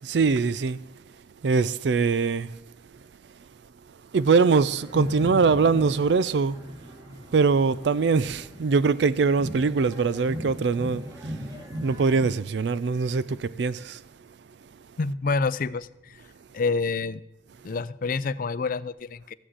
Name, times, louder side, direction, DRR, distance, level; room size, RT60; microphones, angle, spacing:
voice 1, 0.0-0.9 1.4-2.6 4.1-6.8 7.3-11.4 11.8-14.0, right 4 dB, 70° right, 0.4 m, -23 dB
sound 1, 4.2-12.3, equal, 20° right, 2.0 m, -38 dB
voice 2, 15.0-16.2 16.5-17.2 17.6-19.3, left 4 dB, 50° left, 0.5 m, -28 dB
14.0 x 6.2 x 8.0 m
head